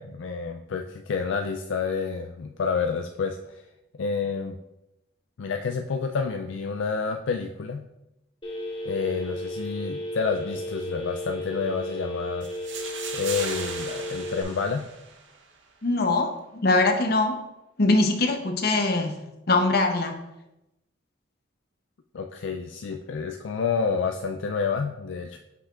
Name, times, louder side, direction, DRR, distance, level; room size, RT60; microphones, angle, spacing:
voice 1, 0.0-3.6 4.0-4.6 5.4-7.9 8.8-12.5 13.1-14.9 22.1-25.4, left 5 dB, 70° left, 4 dB, 0.4 m, -29 dB
Telephone, 8.4-14.4, left 1 dB, 25° left, 2.0 m, -34 dB
sound 1, 12.4-15.4, right 5 dB, 75° right, 0.9 m, -37 dB
voice 2, 15.8-17.4 17.8-19.2 19.5-20.2, left 2 dB, 55° left, 5 dB, 0.8 m, -22 dB
8.4 x 5.7 x 2.4 m, 0.92 s
head